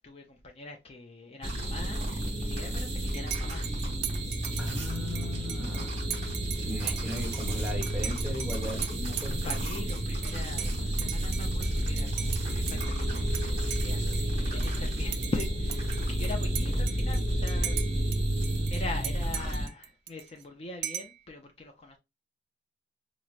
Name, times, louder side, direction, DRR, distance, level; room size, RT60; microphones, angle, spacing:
voice 1, 0.0-3.8 9.4-17.8 18.7-22.0, left 3 dB, 35° left, 0.4 m, -42 dB
sound 1, 1.4-19.7, right 1 dB, 35° right, 1.0 m, -31 dB
sound 2, 1.6-18.7, equal, 65° left, 0.9 m, -41 dB
Dishes pots and pans / Cutlery silverware / Chink clink, 3.1-13.4 13.7-14.8 15.1-18.2 18.4-20.4 20.8-21.2, right 12 dB, 65° right, 0.3 m, -39 dB
voice 2, 4.6-6.0 6.5-9.5, left 1 dB, 5° right, 1.0 m, -38 dB
4.4 x 2.0 x 2.4 m
head